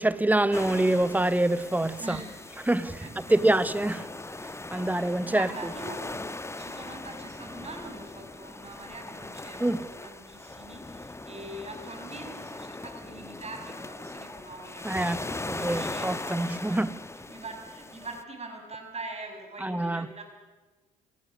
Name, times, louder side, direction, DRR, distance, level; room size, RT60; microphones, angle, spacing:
voice 1, 0.0-2.2 2.7-4.1 4.7-5.5 9.6-9.9 14.8-17.0 19.6-20.1, right 1 dB, 10° right, 1.3 m, -26 dB
sound 1, 0.5-18.2, left 2 dB, 15° left, 1.3 m, -40 dB
voice 2, 2.0-2.4 3.0-3.4 5.3-6.3 6.6-16.8 17.1-20.2, right 2 dB, 35° right, 6.4 m, -43 dB
28.5 x 17.0 x 6.4 m
hypercardioid pair, 50°, 20 cm